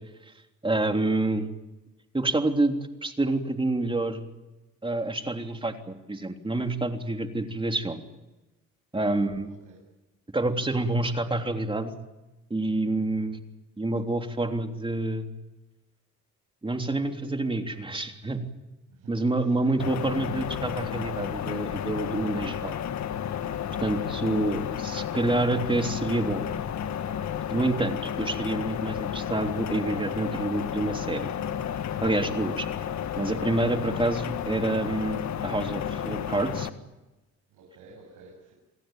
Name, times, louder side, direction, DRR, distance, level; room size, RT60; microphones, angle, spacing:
voice 1, 0.6-1.5 2.1-4.3 4.8-8.0 8.9-9.5 10.3-11.9 12.5-13.4 13.8-15.3 16.6-18.4 19.1-22.8 23.8-26.5 27.5-31.3 32.0-32.7 33.2-36.7, right 2 dB, 15° right, 4 dB, 3.4 m, -28 dB
voice 2, 9.5-9.8 13.0-13.3 18.9-19.9 37.5-38.5, right 4 dB, 85° right, 0 dB, 7.3 m, -52 dB
sound 1, 19.8-36.7, left 9 dB, 65° left, 1.7 m, -32 dB
28.5 x 18.0 x 9.1 m, 1.1 s
cardioid pair, 90°, 30 cm